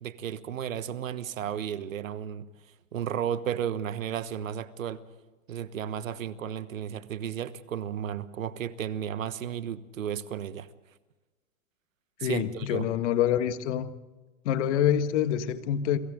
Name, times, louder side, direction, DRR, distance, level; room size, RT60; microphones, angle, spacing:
voice 1, 0.0-2.5 2.9-5.0 5.5-10.7 12.2-12.9, right 9 dB, 80° right, 14 dB, 1.3 m, -33 dB
voice 2, 12.2-13.9 14.5-16.0, left 10 dB, 60° left, 10 dB, 1.8 m, -26 dB
30.0 x 23.0 x 3.8 m, 1.2 s
hypercardioid pair, 115°, 40 cm